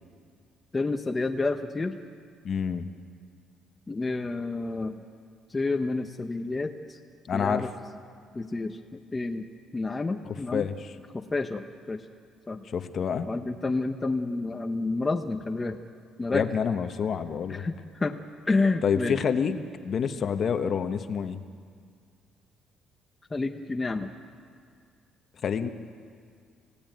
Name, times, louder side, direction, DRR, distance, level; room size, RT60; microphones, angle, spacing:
voice 1, 0.7-2.0 3.9-5.0 5.5-7.0 7.3-7.7 8.3-9.4 9.7-10.7 11.1-12.0 12.5-12.6 13.3-15.8 16.2-16.5 17.5-18.2 18.5-19.2 23.3-24.1, left 3 dB, 15° left, 4 dB, 0.8 m, -29 dB
voice 2, 2.4-2.9 7.3-7.7 10.2-10.7 12.7-13.3 16.3-17.7 18.8-21.4 25.4-25.7, left 7 dB, 40° left, 9 dB, 1.1 m, -28 dB
28.0 x 16.0 x 9.3 m, 2.2 s
cardioid pair, 160°, 0 cm